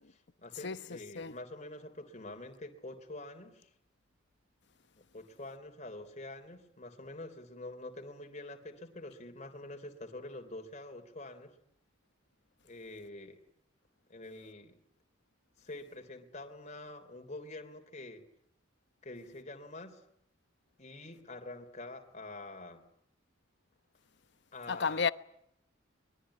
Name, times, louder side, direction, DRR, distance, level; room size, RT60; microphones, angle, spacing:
voice 1, 0.1-3.7 5.0-11.5 12.6-13.4 14.1-14.8 15.6-18.2 19.0-20.0 20.8-22.8 24.5-25.1, left 2 dB, 35° left, 3.4 m, -46 dB
voice 2, 0.6-1.4 24.7-25.1, left 5 dB, 60° left, 1.0 m, -33 dB
24.5 x 22.0 x 9.9 m
head